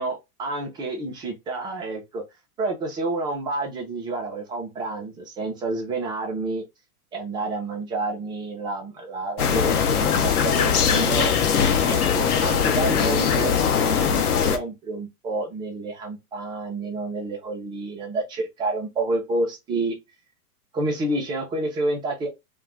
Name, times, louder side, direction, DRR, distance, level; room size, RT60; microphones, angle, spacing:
voice 1, 0.0-2.2 2.6-6.6 7.1-11.3 11.9-20.0 20.7-22.3, right 2 dB, 10° right, 0.3 m, -29 dB
sound 1, 9.4-14.6, left 7 dB, 70° left, 0.8 m, -21 dB
2.4 x 2.2 x 3.2 m
hypercardioid pair, 110°, 46 cm